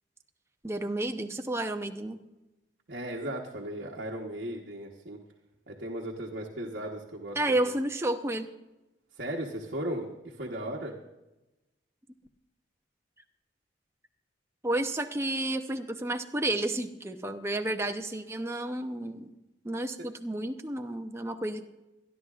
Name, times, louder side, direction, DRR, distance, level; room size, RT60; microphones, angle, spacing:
voice 1, 0.6-2.2 7.4-8.5 14.6-19.3 19.6-21.6, right 1 dB, 15° right, 5 dB, 0.7 m, -31 dB
voice 2, 2.9-5.2 5.7-7.4 7.6-7.7 9.1-11.0, right 1 dB, 60° right, -2 dB, 1.2 m, -36 dB
25.0 x 11.0 x 2.5 m, 1.0 s
head